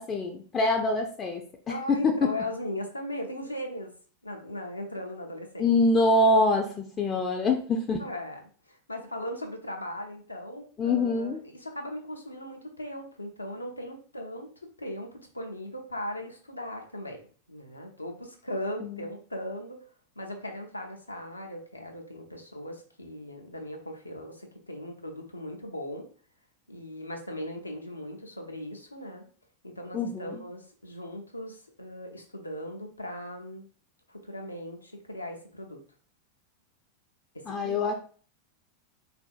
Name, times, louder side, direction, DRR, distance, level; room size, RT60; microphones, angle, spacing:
voice 1, 0.0-1.4 1.7-2.3 5.6-8.0 10.8-11.4 18.8-19.0 29.9-30.4 37.5-37.9, left 2 dB, 25° left, 3 dB, 0.4 m, -25 dB
voice 2, 1.7-3.9 4.2-5.7 8.0-14.5 14.8-17.2 17.5-19.8 20.2-26.1 26.7-29.3 29.6-33.6 34.1-35.8 37.3-37.9, left 1 dB, 85° left, 2 dB, 0.6 m, -38 dB
3.6 x 2.5 x 2.4 m, 0.43 s
figure-of-eight pair, 90°, 0 cm